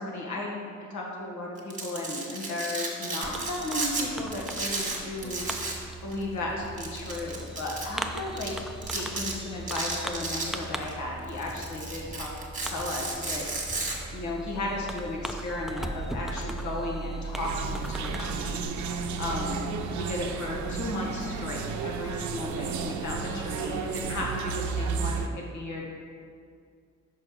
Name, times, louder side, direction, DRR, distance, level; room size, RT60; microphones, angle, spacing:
voice 1, 0.0-5.4 6.0-8.5 8.9-12.3 12.6-13.5 14.1-18.6 19.2-25.8, left 2 dB, 70° left, -2 dB, 1.5 m, -34 dB
Domestic sounds home sounds, 1.6-4.0 4.3-5.8 6.1-6.2 6.8-7.9 8.4-8.5 8.8-9.3 9.7-10.9 11.3-13.9, right 3 dB, 25° right, 1.5 m, -33 dB
Fireworks, 3.2-18.6, right 2 dB, ahead, 0.3 m, -38 dB
sound 1, 17.3-25.3, right 5 dB, 70° right, 0.6 m, -33 dB
5.5 x 5.3 x 4.8 m, 2.3 s
cardioid pair, 90°, 30 cm